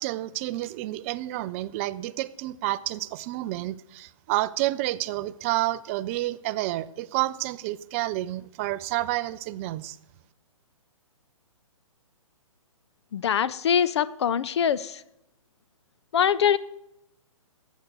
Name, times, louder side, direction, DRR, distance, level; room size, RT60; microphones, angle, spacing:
voice 1, 0.0-10.0, right 16 dB, 25° right, 0.4 m, -29 dB
voice 2, 13.1-15.0 16.1-16.6, left 8 dB, 55° left, 0.5 m, -23 dB
12.0 x 8.2 x 6.1 m
figure-of-eight pair, 130°, 17 cm